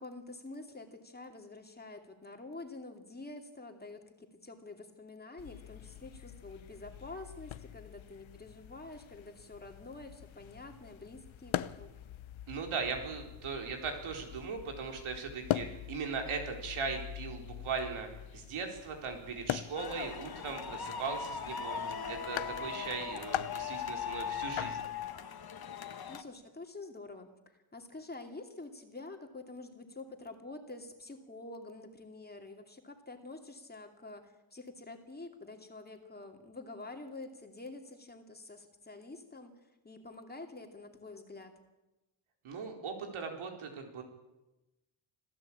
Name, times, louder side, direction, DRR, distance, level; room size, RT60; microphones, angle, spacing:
voice 1, 0.0-11.9 21.8-22.3 26.1-39.5 39.8-41.6, left 2 dB, 20° left, 3 dB, 2.6 m, -48 dB
sound 1, 5.4-25.1, left 12 dB, 75° left, 0.9 m, -43 dB
voice 2, 12.5-18.1 18.3-21.8 22.1-24.8 42.4-44.0, right 5 dB, 85° right, 3 dB, 4.6 m, -39 dB
sound 2, 19.8-26.2, left 7 dB, 50° left, 1.8 m, -39 dB
26.5 x 15.5 x 8.8 m, 1.0 s
wide cardioid pair, 145°, 48 cm